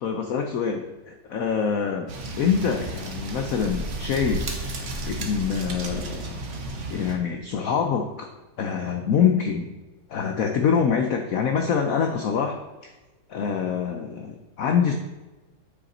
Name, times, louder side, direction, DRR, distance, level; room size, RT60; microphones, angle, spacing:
voice 1, 0.0-2.1 2.4-4.5 5.2-6.4 6.9-8.3 8.6-9.7 10.1-12.6 12.8-12.9 13.3-14.9, left 7 dB, 75° left, 4 dB, 0.8 m, -25 dB
sound 1, 2.1-7.1, right 2 dB, 45° right, 1.0 m, -33 dB
8.9 x 5.1 x 4.2 m, 1.1 s
omnidirectional pair, 2.2 m